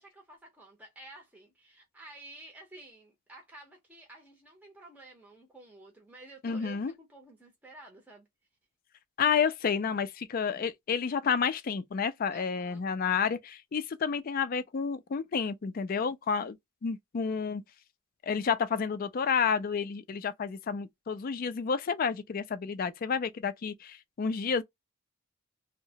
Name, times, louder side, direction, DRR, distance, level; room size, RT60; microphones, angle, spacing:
voice 1, 0.0-8.3 12.3-13.4, right 2 dB, 5° right, 0.6 m, -52 dB
voice 2, 6.4-6.9 9.2-16.6 16.8-17.6 18.2-24.6, left 6 dB, 40° left, 0.3 m, -30 dB
2.8 x 2.1 x 2.7 m
head